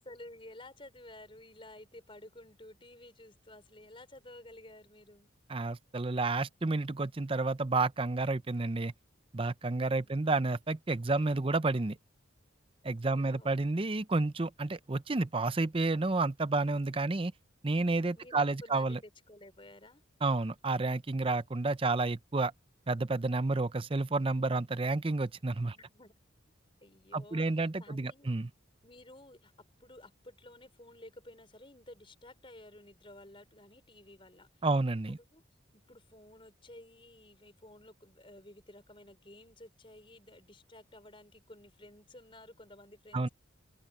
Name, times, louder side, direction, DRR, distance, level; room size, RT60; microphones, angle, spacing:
voice 1, 0.0-5.3 13.0-13.5 18.1-20.0 25.7-26.1 26.8-28.4 28.8-35.4 35.7-43.3, left 1 dB, 25° left, 5.2 m, -53 dB
voice 2, 5.5-8.9 9.3-12.0 12.8-17.3 17.6-19.0 20.2-22.5 22.9-25.8 27.1-28.5 34.6-35.2 43.1-43.3, right 3 dB, 25° right, 0.6 m, -30 dB
open air
head